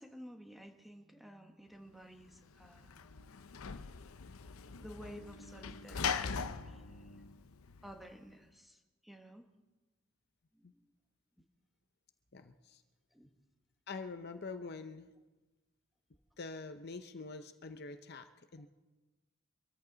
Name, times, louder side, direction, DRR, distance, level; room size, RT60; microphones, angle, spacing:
voice 1, 0.0-3.0 4.8-7.2 7.8-9.5 10.5-10.8 13.1-13.3, equal, ahead, 4 dB, 1.3 m, -53 dB
Sliding door / Slam, 2.3-8.1, left 6 dB, 85° left, 0.7 m, -41 dB
voice 2, 12.3-12.8 13.9-15.1 16.4-18.7, left 4 dB, 50° left, 9 dB, 0.7 m, -45 dB
25.0 x 14.0 x 4.0 m, 1.2 s
head